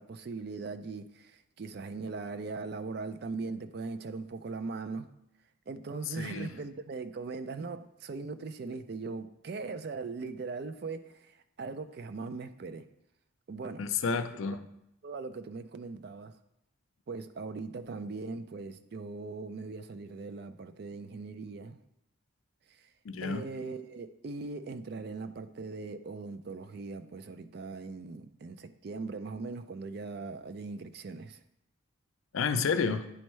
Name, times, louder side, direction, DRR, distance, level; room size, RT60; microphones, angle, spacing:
voice 1, 0.0-5.1 5.7-12.9 13.5-14.2 14.5-14.6 15.0-16.4 17.1-21.8 22.7-22.9 23.2-31.4, right 4 dB, 50° right, 0.4 m, -40 dB
voice 2, 6.2-6.5 13.8-14.6 23.1-23.4 32.3-33.1, left 5 dB, 80° left, 0.5 m, -30 dB
9.9 x 4.4 x 3.1 m
head